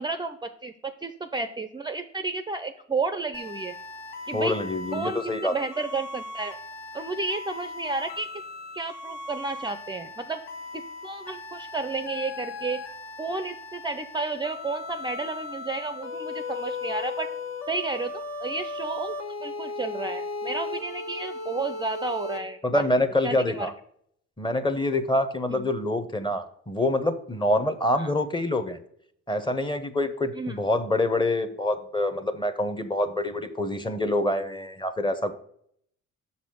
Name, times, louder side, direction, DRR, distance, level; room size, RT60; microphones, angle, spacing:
voice 1, 0.0-3.7 4.3-4.5 4.9-6.6 6.9-8.3 8.7-10.4 10.7-12.8 13.2-17.3 17.7-18.1 18.4-19.1 19.4-22.8 23.2-23.7 25.5-25.7 28.0-28.1 30.3-30.6, right 3 dB, 15° right, 9 dB, 0.5 m, -32 dB
sound 1, 3.3-22.4, left 3 dB, 65° left, 1.3 m, -37 dB
voice 2, 4.3-5.5 22.6-23.7 24.4-28.8 29.3-35.3, left 1 dB, 15° left, 10 dB, 0.9 m, -26 dB
6.4 x 4.2 x 6.3 m, 0.66 s
cardioid pair, 90°, 30 cm